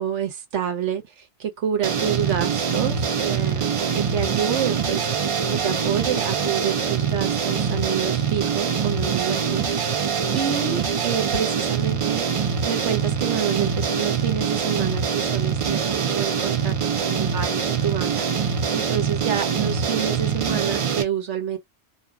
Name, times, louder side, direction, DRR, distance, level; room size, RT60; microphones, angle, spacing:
voice 1, 0.0-21.6, right 8 dB, 85° right, 1.1 m, -28 dB
sound 1, 1.8-21.0, right 6 dB, 60° right, 0.3 m, -24 dB
2.5 x 2.3 x 2.3 m
omnidirectional pair, 1.2 m